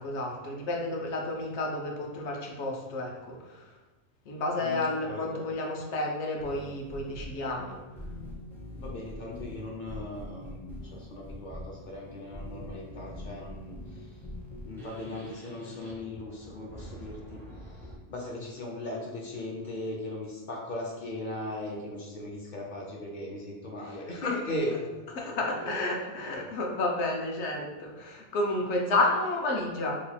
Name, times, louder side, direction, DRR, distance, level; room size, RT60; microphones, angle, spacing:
voice 1, 0.0-3.7 4.2-7.8 24.2-24.3 25.2-29.9, left 2 dB, 75° left, 0 dB, 1.0 m, -31 dB
voice 2, 4.6-5.4 8.7-14.1 14.7-17.4 17.8-24.7 25.3-25.7, left 1 dB, 55° left, -2 dB, 0.6 m, -38 dB
sound 1, 6.4-18.0, equal, 5° left, 0.3 m, -44 dB
2.9 x 2.3 x 4.1 m, 1.2 s
omnidirectional pair, 1.2 m